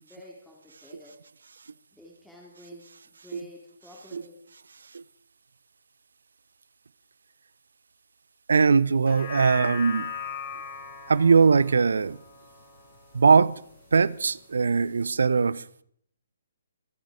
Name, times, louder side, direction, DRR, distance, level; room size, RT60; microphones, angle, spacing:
voice 1, 0.0-1.2 1.9-4.4, left 2 dB, 5° left, 2.8 m, -50 dB
voice 2, 8.5-10.1 11.1-12.2 13.1-13.6 13.9-15.6, right 5 dB, 70° right, 0.6 m, -21 dB
sound 1, 8.9-13.5 13.9-14.0, left 5 dB, 50° left, 4.6 m, -38 dB
25.5 x 8.9 x 4.9 m
figure-of-eight pair, 135°, 0 cm